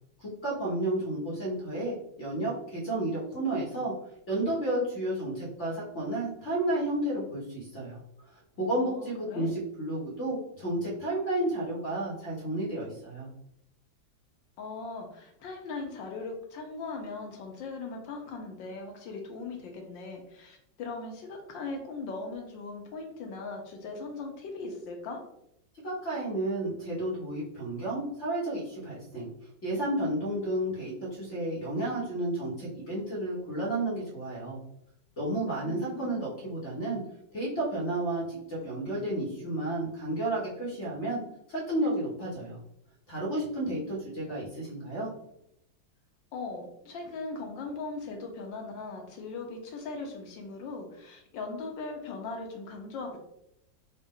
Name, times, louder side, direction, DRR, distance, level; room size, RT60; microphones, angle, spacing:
voice 1, 0.2-3.9 4.3-8.0 8.6-13.3 25.8-29.3 29.6-34.6 35.2-37.0 37.3-41.2 41.5-42.6 43.1-45.1, right 1 dB, 45° left, -8 dB, 1.2 m, -32 dB
voice 2, 8.8-9.5 14.6-25.2 35.6-36.1 46.3-53.2, left 3 dB, 75° left, 2 dB, 1.5 m, -39 dB
4.3 x 2.4 x 3.6 m, 0.78 s
omnidirectional pair, 2.1 m